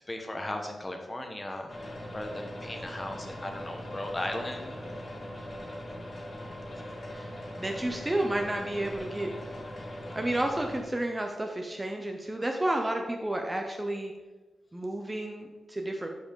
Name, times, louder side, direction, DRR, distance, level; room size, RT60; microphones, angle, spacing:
voice 1, 0.1-4.8, left 1 dB, 20° left, 4 dB, 1.1 m, -37 dB
sound 1, 1.7-10.8, left 1 dB, 35° left, 1.7 m, -41 dB
voice 2, 7.6-9.3 9.8-14.1 14.7-16.1, right 1 dB, 15° right, 3 dB, 0.7 m, -31 dB
12.0 x 4.8 x 3.8 m, 1.2 s
wide cardioid pair, 130°, 0 cm